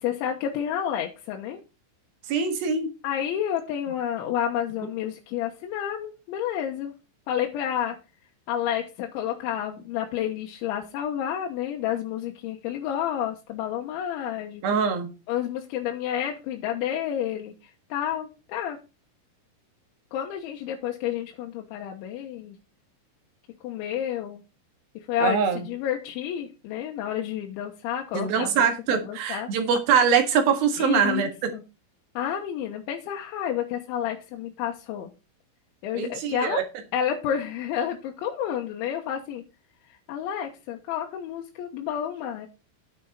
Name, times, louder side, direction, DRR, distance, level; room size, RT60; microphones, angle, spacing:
voice 1, 0.0-1.6 3.0-6.9 7.3-8.0 8.5-14.8 15.3-17.5 17.9-18.8 20.1-22.6 23.6-24.4 25.0-28.7 29.0-29.5 30.8-31.6 32.1-35.1 35.8-36.6 36.9-39.4 40.1-42.5, left 9 dB, 75° left, 1 dB, 3.2 m, -30 dB
voice 2, 2.3-2.9 14.6-15.1 25.2-25.6 28.1-31.3 35.9-36.6, right 6 dB, 60° right, 6 dB, 2.9 m, -23 dB
9.8 x 8.9 x 4.1 m, 0.29 s
omnidirectional pair, 5.9 m